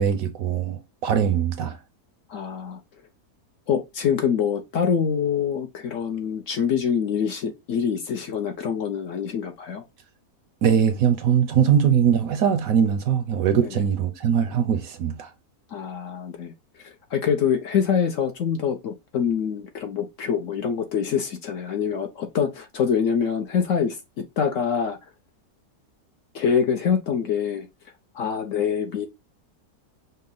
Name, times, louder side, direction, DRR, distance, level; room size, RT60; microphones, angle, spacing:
voice 1, 0.0-1.8 10.6-15.3, right 8 dB, 70° right, 0.9 m, -21 dB
voice 2, 2.3-2.8 3.7-9.8 13.6-13.8 15.7-16.5 16.8-24.0 24.4-25.0 26.3-27.7 28.1-29.1, left 7 dB, 65° left, 0.9 m, -25 dB
5.4 x 2.0 x 3.8 m
omnidirectional pair, 1.7 m